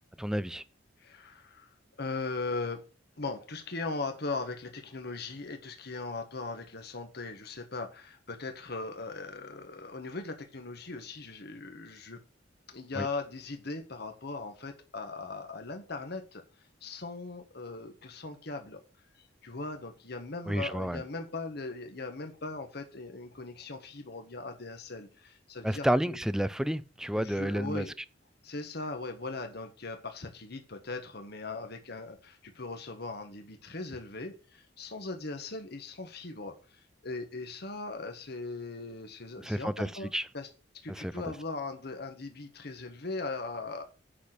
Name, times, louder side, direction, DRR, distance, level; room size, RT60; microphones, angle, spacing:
voice 1, 0.2-0.6 13.0-13.1 20.5-21.0 25.6-27.9 39.4-40.2 40.9-41.3, equal, 5° right, 0.4 m, -30 dB
voice 2, 1.0-2.8 3.2-12.2 12.7-16.4 16.8-18.8 19.1-26.2 27.1-27.9 28.4-40.5 40.8-43.8, left 3 dB, 60° left, 1.4 m, -39 dB
8.5 x 6.1 x 6.5 m
head